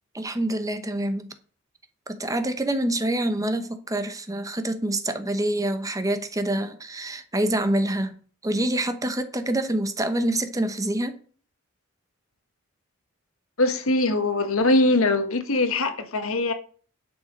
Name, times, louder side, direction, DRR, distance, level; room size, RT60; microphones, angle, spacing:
voice 1, 0.1-1.3 2.1-8.1 8.4-11.1, right 1 dB, 15° right, 1.0 m, -26 dB
voice 2, 13.6-16.5, left 2 dB, 80° left, 1.5 m, -22 dB
10.5 x 6.8 x 5.2 m
head